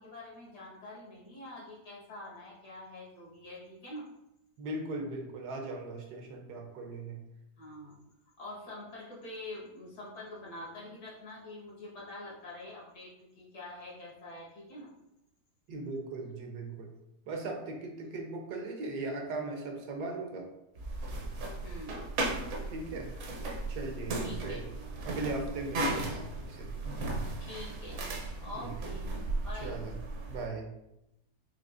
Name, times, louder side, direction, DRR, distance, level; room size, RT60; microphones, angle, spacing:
voice 1, 0.0-4.1 7.6-8.0 8.4-14.9 18.0-18.2 21.6-22.0 24.2-24.7 27.4-28.2 28.4-29.8, left 2 dB, 80° left, -5 dB, 2.0 m, -46 dB
voice 2, 4.6-7.2 15.7-16.9 17.3-20.5 22.7-23.1 23.7-24.6 25.0-26.7 28.6-28.7 29.6-29.9 30.3-30.7, right 3 dB, 75° right, 2 dB, 1.3 m, -38 dB
sound 1, 20.8-30.5, right 2 dB, 60° right, 0.8 m, -36 dB
5.9 x 2.8 x 2.5 m, 0.87 s
omnidirectional pair, 1.7 m